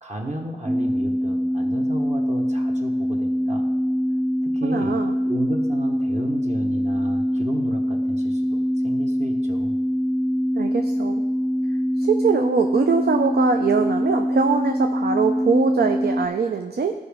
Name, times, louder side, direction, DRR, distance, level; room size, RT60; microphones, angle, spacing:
voice 1, 0.0-3.7 4.4-9.8, right 1 dB, 40° right, 0 dB, 1.1 m, -33 dB
sound 1, 0.7-16.3, equal, 5° right, 0.3 m, -23 dB
voice 2, 4.6-5.2 10.5-11.2 12.0-16.9, right 5 dB, 65° right, 5 dB, 0.5 m, -22 dB
13.5 x 5.0 x 3.5 m, 1.3 s
wide cardioid pair, 80°, 17 cm